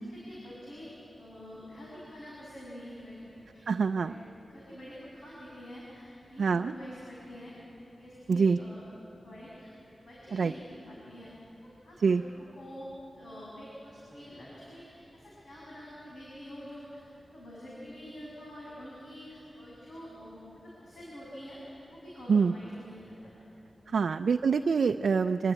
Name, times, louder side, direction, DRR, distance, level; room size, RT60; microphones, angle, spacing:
voice 1, 0.1-0.9 1.2-4.2 4.5-7.6 8.0-8.8 9.2-9.7 10.0-11.3 11.6-12.9 13.1-17.0 17.3-23.3 23.8-24.1, equal, 70° left, -6 dB, 7.5 m, -47 dB
voice 2, 3.7-4.1 6.4-6.7 8.3-8.6 10.3-10.5 12.0-12.2 22.3-22.5 23.9-25.5, right 5 dB, 70° right, 5 dB, 0.5 m, -25 dB
26.5 x 20.5 x 9.0 m, 2.9 s
wide cardioid pair, 140°, 0 cm